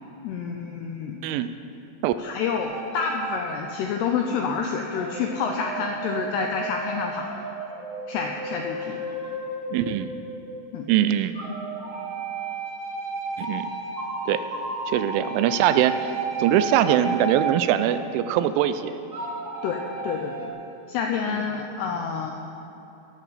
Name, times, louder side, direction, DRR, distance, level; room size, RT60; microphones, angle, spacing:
voice 1, 0.2-1.2 2.2-7.3 8.1-9.0 10.7-10.9 19.6-20.6 20.9-22.3, left 6 dB, 85° left, 2 dB, 2.4 m, -28 dB
sound 1, 2.6-4.0 4.9-10.8 11.3-18.4 19.1-20.5, right 3 dB, 25° right, 2.8 m, -33 dB
voice 2, 9.7-10.1 10.9-11.3 13.4-13.7 14.3-14.4 14.9-16.1 16.4-18.9 21.2-21.6, right 11 dB, 85° right, 11 dB, 3.0 m, -22 dB
17.5 x 13.0 x 4.1 m, 3.0 s
omnidirectional pair, 5.7 m